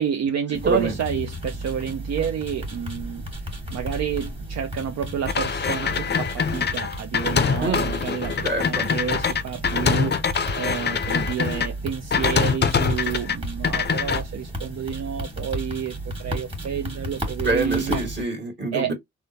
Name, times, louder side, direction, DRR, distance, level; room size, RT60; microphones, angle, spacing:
voice 1, 0.0-10.3 10.5-18.0 18.7-18.9, right 8 dB, 65° right, 0.5 m, -29 dB
sound 1, 0.5-18.2, right 1 dB, 20° right, 1.4 m, -34 dB
voice 2, 0.6-1.0 7.6-7.9 8.4-8.9 17.4-18.9, right 2 dB, 40° right, 1.4 m, -25 dB
sound 2, 5.3-11.7 12.1-13.4 13.6-14.2, left 6 dB, 35° left, 0.5 m, -24 dB
3.5 x 2.1 x 2.6 m
cardioid pair, 95°, 29 cm